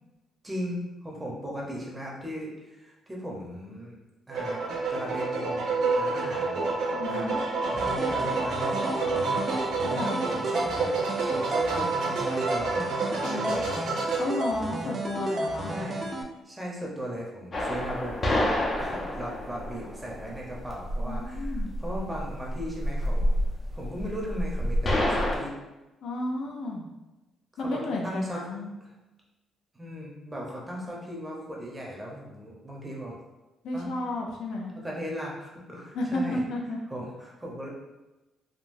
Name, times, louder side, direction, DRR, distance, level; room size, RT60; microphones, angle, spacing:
voice 1, 0.4-4.0 4.3-4.6 4.9-6.7 7.1-7.3 7.7-10.0 10.2-10.9 11.3-13.7 15.6-16.1 16.4-23.4 23.7-25.5 27.5-28.4 29.8-33.2 33.7-33.9 34.7-36.4 36.9-37.7, equal, 15° right, -3 dB, 0.9 m, -37 dB
sound 1, 4.3-14.2, right 3 dB, 80° right, 0.8 m, -29 dB
voice 2, 7.0-7.4 9.9-10.3 13.2-13.6 14.2-15.7 21.1-21.7 26.0-26.9 27.6-28.8 33.6-34.7 35.9-36.8, left 2 dB, 75° left, 0 dB, 0.5 m, -32 dB
sound 2, 7.8-16.2, right 2 dB, 40° right, 0.4 m, -33 dB
sound 3, 17.5-25.4, left 1 dB, 40° left, 0.7 m, -29 dB
3.7 x 2.2 x 2.6 m, 1.0 s
cardioid pair, 90°, 0 cm